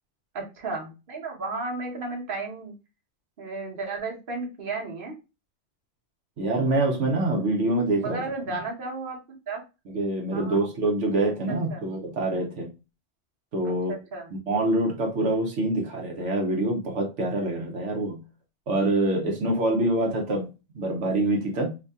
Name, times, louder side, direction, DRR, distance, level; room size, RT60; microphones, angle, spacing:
voice 1, 0.3-2.7 3.4-5.1 8.0-9.2 9.5-9.6 10.3-10.6 11.5-11.9 13.6-14.3, right 3 dB, 50° right, 1.2 m, -33 dB
voice 2, 6.4-8.3 9.9-12.7 13.5-13.9 14.5-18.2 18.7-21.8, right 2 dB, 85° right, 1.2 m, -25 dB
2.8 x 2.7 x 3.4 m
omnidirectional pair, 1.2 m